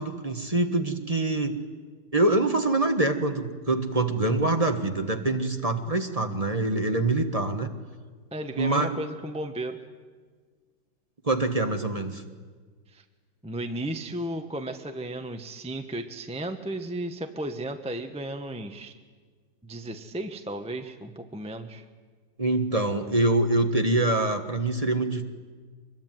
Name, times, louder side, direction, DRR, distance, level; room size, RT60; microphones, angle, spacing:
voice 1, 0.0-1.6 2.1-7.7 8.6-8.9 11.2-12.2 22.4-25.2, right 2 dB, 20° right, 5 dB, 1.2 m, -25 dB
voice 2, 8.3-9.8 12.9-13.0 13.4-18.9 19.6-21.8, right 1 dB, 5° right, 5 dB, 0.8 m, -34 dB
25.0 x 22.0 x 9.2 m, 1.5 s
omnidirectional pair, 2.4 m